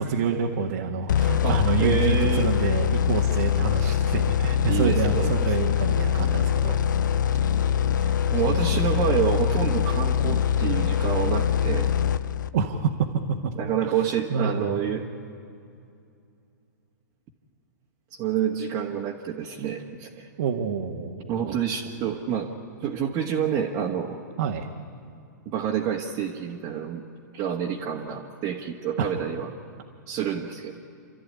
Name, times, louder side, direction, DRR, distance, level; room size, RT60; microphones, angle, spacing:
voice 1, 0.0-6.8 7.6-9.1 12.5-13.5 13.8-13.9 14.3-14.8 20.4-21.6 24.4-24.7 29.0-29.1, right 6 dB, 60° right, 0 dB, 1.8 m, -28 dB
sound 1, 1.1-12.7, left 8 dB, 75° left, 0.6 m, -23 dB
voice 2, 1.4-2.5 4.7-5.3 8.3-11.9 13.5-15.1 18.2-20.3 21.3-22.5 22.8-24.2 25.5-27.0 27.3-29.5 30.1-30.8, right 8 dB, 35° right, -2 dB, 1.9 m, -28 dB
29.5 x 13.0 x 9.7 m, 2.5 s
hypercardioid pair, 125°, 10 cm